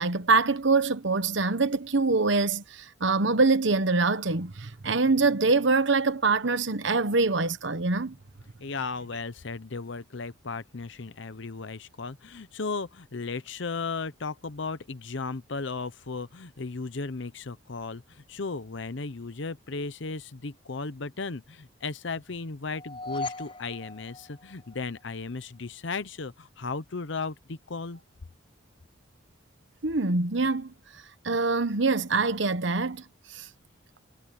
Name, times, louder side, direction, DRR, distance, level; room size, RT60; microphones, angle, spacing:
voice 1, 0.0-8.2 29.8-30.7 31.2-33.0 33.3-33.5, right 3 dB, 65° right, 1.1 m, -24 dB
voice 2, 8.6-28.0, left 4 dB, 65° left, 0.8 m, -35 dB
sound 1, 22.7-25.0, left 2 dB, 25° left, 3.5 m, -38 dB
head